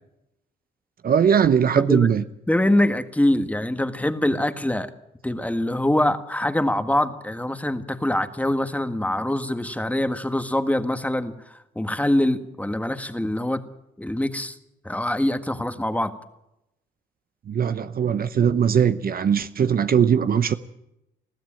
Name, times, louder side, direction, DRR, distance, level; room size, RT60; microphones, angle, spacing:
voice 1, 1.0-2.2 17.5-20.5, right 7 dB, 50° right, 12 dB, 0.8 m, -20 dB
voice 2, 1.8-2.1 2.5-4.9 5.2-13.6 14.0-14.6 14.8-16.1, left 1 dB, 5° left, 9 dB, 1.6 m, -24 dB
21.0 x 14.5 x 9.0 m, 0.86 s
cardioid pair, 90°, 20 cm